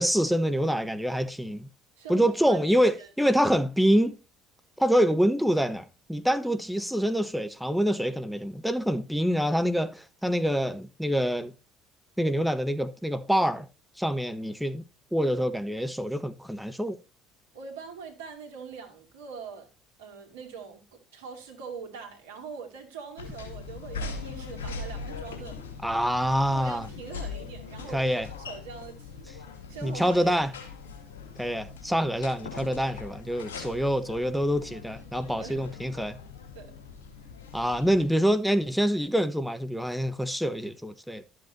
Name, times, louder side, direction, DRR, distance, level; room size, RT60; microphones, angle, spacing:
voice 1, 0.0-1.7 2.1-4.2 4.8-11.5 12.2-13.7 14.0-14.8 15.1-17.0 25.8-26.9 27.9-28.3 29.8-30.5 31.4-36.2 37.5-41.2, equal, ahead, 1.0 m, -26 dB
voice 2, 2.0-3.1 17.5-19.7 20.0-25.6 26.5-29.3 29.7-30.6 35.4-35.6 36.5-36.7, right 6 dB, 80° right, 2.3 m, -43 dB
sound 1, 23.2-38.0, left 4 dB, 80° left, 2.4 m, -41 dB
12.5 x 7.8 x 2.6 m
hypercardioid pair, 60°, 0 cm